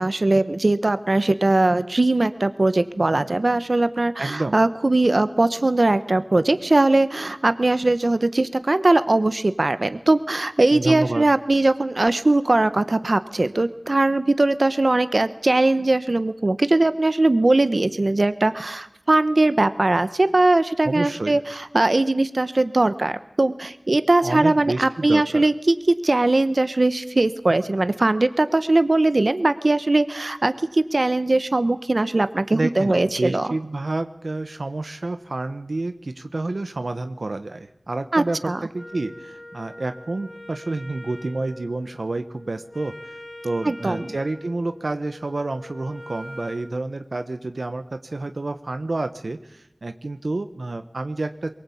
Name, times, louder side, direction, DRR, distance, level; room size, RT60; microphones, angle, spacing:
voice 1, 0.0-25.8 26.0-33.5 38.1-38.6 43.6-44.1, right 2 dB, 65° right, 12 dB, 1.1 m, -20 dB
voice 2, 4.2-4.6 10.7-11.3 20.8-21.4 24.2-25.5 32.5-43.2 43.4-51.5, right 2 dB, 90° right, 9 dB, 1.0 m, -29 dB
Wind instrument woodwind instrument, 38.7-46.7, left 1 dB, 80° left, 3.7 m, -42 dB
23.0 x 21.0 x 8.5 m, 0.86 s
wide cardioid pair, 50°, 0 cm